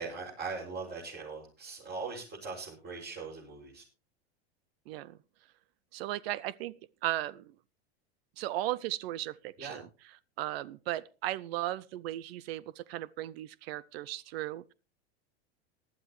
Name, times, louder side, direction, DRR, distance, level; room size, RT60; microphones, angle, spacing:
voice 1, 0.0-3.8 9.6-9.8, right 4 dB, 30° right, 6.4 m, -40 dB
voice 2, 4.9-5.2 5.9-6.7 7.0-7.5 8.4-9.9 10.4-14.7, right 15 dB, 65° right, 0.6 m, -36 dB
19.5 x 12.5 x 3.2 m
hypercardioid pair, 105°, 32 cm